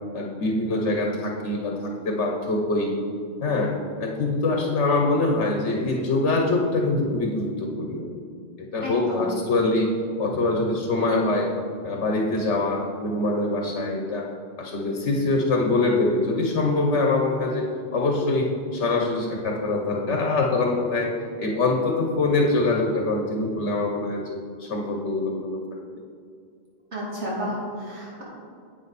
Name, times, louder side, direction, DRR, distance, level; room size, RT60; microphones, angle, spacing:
voice 1, 0.1-2.9 3.4-3.7 4.0-8.1 8.6-9.9 10.2-11.5 11.8-14.3 14.6-17.7 17.9-21.1 21.4-25.6, left 2 dB, 75° left, 1 dB, 1.3 m, -24 dB
voice 2, 8.8-9.2 26.9-28.2, equal, 75° right, -6 dB, 3.0 m, -31 dB
9.7 x 8.3 x 4.2 m, 2.3 s
omnidirectional pair, 1.2 m